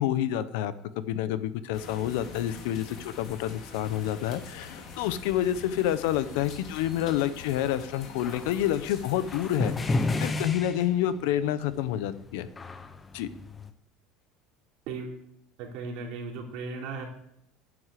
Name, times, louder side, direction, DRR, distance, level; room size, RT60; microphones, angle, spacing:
voice 1, 0.0-12.5 13.1-13.3, left 11 dB, 80° left, 14 dB, 1.0 m, -28 dB
sound 1, 1.7-10.4, left 5 dB, 45° left, 2.8 m, -45 dB
sound 2, 8.2-8.6 9.3-11.5 11.7-13.7, left 2 dB, 15° left, 0.8 m, -32 dB
voice 2, 14.9-15.2 15.6-17.1, right 4 dB, 60° right, 0 dB, 3.5 m, -36 dB
10.0 x 9.8 x 7.6 m, 0.73 s
cardioid pair, 155°, 0 cm